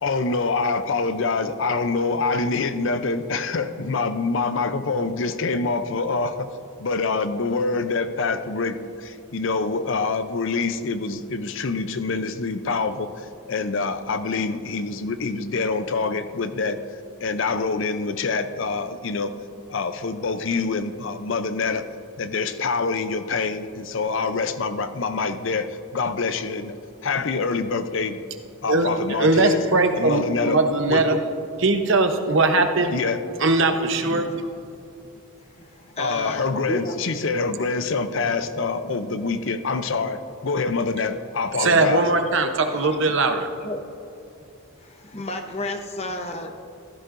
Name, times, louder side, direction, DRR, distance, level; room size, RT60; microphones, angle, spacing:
voice 1, 0.0-6.5 6.8-16.8 17.2-19.3 19.7-21.8 22.2-26.7 27.0-28.2 28.6-29.6 30.0-30.6 30.9-31.2 32.9-33.2 36.0-42.0, left 4 dB, 60° left, 10 dB, 0.5 m, -25 dB
voice 2, 28.7-31.2 31.6-32.9 33.4-34.3 41.6-43.5, right 2 dB, 60° right, 6 dB, 0.8 m, -20 dB
voice 3, 34.1-34.5 35.6-35.7 36.0-37.0 42.7-43.0 43.6-43.8 44.8-46.6, left 1 dB, 30° left, 5 dB, 0.8 m, -32 dB
15.5 x 13.0 x 2.6 m, 2.7 s
head